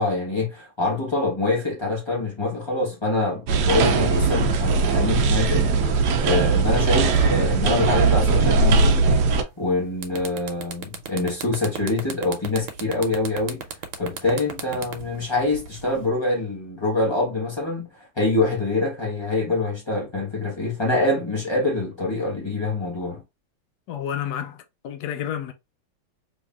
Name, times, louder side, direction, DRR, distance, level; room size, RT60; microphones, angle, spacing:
voice 1, 0.0-9.1 9.6-13.6 14.0-23.2, left 2 dB, 20° left, 0.8 m, -25 dB
sound 1, 3.5-9.4, right 4 dB, 70° right, 1.0 m, -19 dB
sound 2, 9.5-9.7 10.0-16.1, right 7 dB, 85° right, 1.6 m, -35 dB
voice 2, 23.9-25.5, left 9 dB, 70° left, 1.0 m, -30 dB
3.7 x 3.3 x 2.3 m
omnidirectional pair, 2.2 m